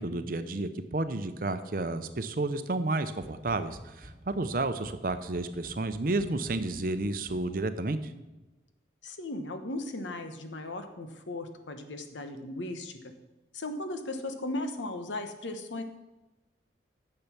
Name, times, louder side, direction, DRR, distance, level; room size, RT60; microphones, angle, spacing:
voice 1, 0.0-8.0, right 2 dB, 50° right, 11 dB, 0.7 m, -31 dB
sound 1, 3.2-7.8, equal, ahead, 3.0 m, -51 dB
voice 2, 9.0-13.0 13.5-15.8, left 2 dB, 90° left, 7 dB, 1.1 m, -37 dB
10.0 x 6.8 x 5.9 m, 1.1 s
head